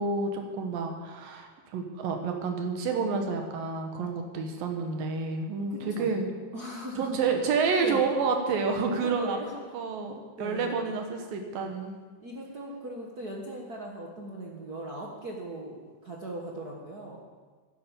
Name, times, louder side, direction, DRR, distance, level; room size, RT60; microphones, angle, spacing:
voice 1, 0.0-6.3 7.0-9.4 9.7-10.1 10.4-12.0, right 4 dB, 80° right, 4 dB, 3.2 m, -29 dB
voice 2, 5.7-6.2 6.5-7.2 7.8-8.0 9.0-9.5 10.4-10.8 12.2-17.2, right 1 dB, 60° right, -1 dB, 0.9 m, -39 dB
11.5 x 10.5 x 7.3 m, 1.5 s
omnidirectional pair, 4.0 m